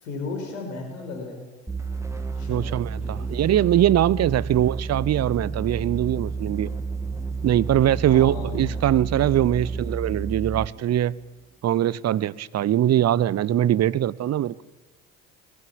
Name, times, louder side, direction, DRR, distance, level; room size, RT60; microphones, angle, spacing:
voice 1, 0.0-1.4 2.3-2.7 3.0-3.3 8.1-8.8, left 4 dB, 80° left, 5.0 m, -35 dB
sound 1, 1.7-10.8, right 4 dB, 5° right, 2.6 m, -31 dB
voice 2, 2.5-6.7 7.4-11.1 11.6-14.6, right 12 dB, 40° right, 0.8 m, -22 dB
20.0 x 16.5 x 8.8 m
hypercardioid pair, 55°, 39 cm